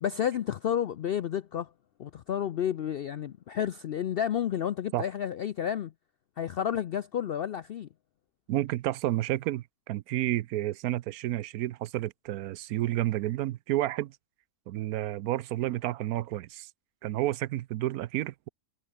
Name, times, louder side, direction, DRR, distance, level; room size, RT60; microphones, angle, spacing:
voice 1, 0.0-1.7 2.0-5.9 6.4-7.9, left 9 dB, 75° left, 0.5 m, -31 dB
voice 2, 8.5-14.2 14.7-16.7 17.0-18.5, right 14 dB, 85° right, 1.1 m, -30 dB
omnidirectional pair, 1.5 m